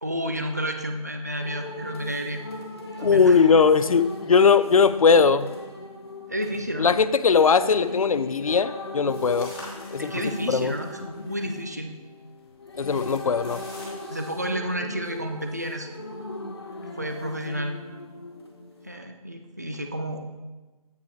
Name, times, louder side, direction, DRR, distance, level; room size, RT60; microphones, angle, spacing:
voice 1, 0.0-2.4 3.0-3.4 6.3-7.0 10.0-11.9 14.1-15.9 16.9-17.8 18.8-20.2, equal, 30° right, 5 dB, 0.4 m, -31 dB
sound 1, 1.4-19.0, left 2 dB, 40° left, 0.8 m, -39 dB
voice 2, 3.0-5.5 6.8-9.5 9.9-10.1 10.5-10.7 12.8-13.6, left 5 dB, 65° left, 14 dB, 0.4 m, -19 dB
sound 2, 9.1-11.8 12.4-14.1, left 1 dB, 15° left, 1.5 m, -46 dB
8.2 x 5.1 x 4.4 m, 1.2 s
figure-of-eight pair, 175°, 19 cm